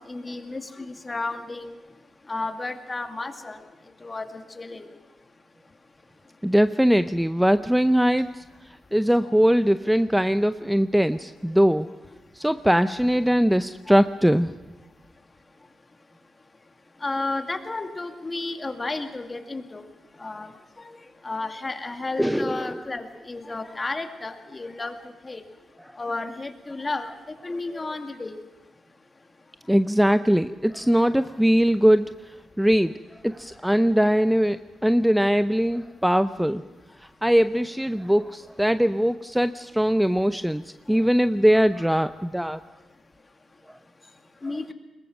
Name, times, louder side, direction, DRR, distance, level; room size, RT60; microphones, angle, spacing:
voice 1, 0.1-1.7 2.3-3.6 4.0-4.3 4.6-4.9 17.0-19.8 20.2-20.5 20.8-20.9 21.2-25.0 25.2-25.4 26.0-27.1 27.4-28.4 44.4-44.7, left 3 dB, 30° left, 6 dB, 2.1 m, -32 dB
voice 2, 6.4-11.9 12.3-14.5 22.2-22.8 29.7-32.1 32.6-33.0 33.2-36.6 37.2-42.6 43.7-43.8, equal, 5° right, 12 dB, 0.6 m, -21 dB
22.0 x 19.5 x 6.2 m, 1.2 s
supercardioid pair, 50°, 0 cm